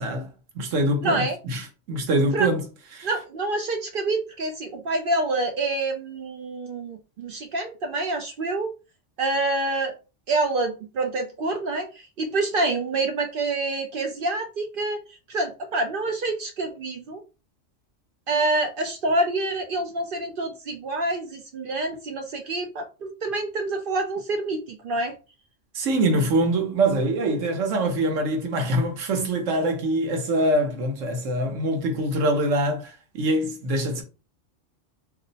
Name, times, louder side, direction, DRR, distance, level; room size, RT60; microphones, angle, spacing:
voice 1, 0.0-2.6 2.9-3.1 25.7-34.0, right 1 dB, 85° right, 1.2 m, -24 dB
voice 2, 1.0-1.4 2.3-2.5 3.0-8.7 9.2-9.9 10.3-17.2 18.3-25.1, right 2 dB, 60° right, 0.6 m, -27 dB
2.7 x 2.0 x 3.9 m
omnidirectional pair, 1.3 m